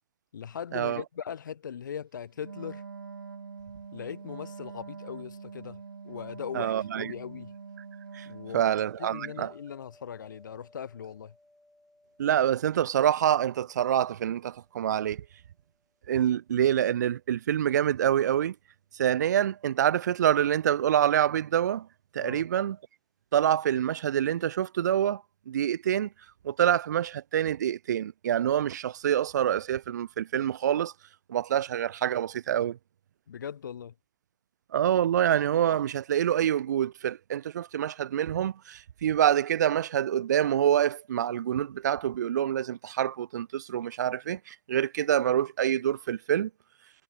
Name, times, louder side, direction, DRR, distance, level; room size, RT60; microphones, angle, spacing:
voice 1, 0.3-2.8 3.9-7.6 8.3-8.6 9.0-11.3 22.2-22.5 33.3-33.9, left 8 dB, 60° left, 1.8 m, -39 dB
Wind instrument woodwind instrument, 2.3-8.8, right 5 dB, 80° right, 2.4 m, -44 dB
voice 2, 6.5-7.1 8.1-8.3 8.5-9.5 12.2-15.2 16.1-18.5 19.0-21.9 22.1-22.8 23.3-26.1 26.4-30.9 31.3-32.8 34.7-46.5, right 10 dB, 55° right, 0.5 m, -26 dB
sound 1, 8.8-15.8 21.0-21.2, left 1 dB, ahead, 7.5 m, -59 dB
hypercardioid pair, 145°, 11 cm